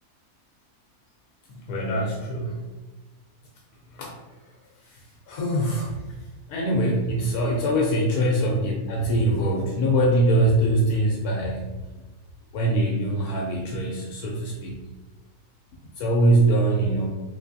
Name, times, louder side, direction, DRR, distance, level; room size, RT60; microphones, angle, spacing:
voice 1, 1.5-2.6 3.9-4.2 4.9-5.0 5.3-6.0 6.5-11.7 12.5-14.8 16.0-17.1, right 1 dB, 75° left, -1 dB, 1.1 m, -23 dB
3.6 x 3.1 x 2.6 m, 1.2 s
omnidirectional pair, 1.7 m